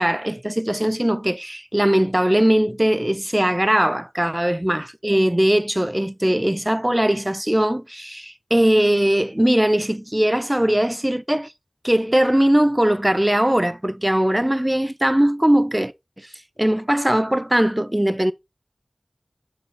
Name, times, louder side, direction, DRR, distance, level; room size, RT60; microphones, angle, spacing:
voice 1, 0.0-11.5 11.8-15.9 16.2-16.3 16.6-18.3, right 1 dB, 15° right, 0.5 m, -20 dB
7.1 x 4.0 x 3.9 m
wide cardioid pair, 55°, 0 cm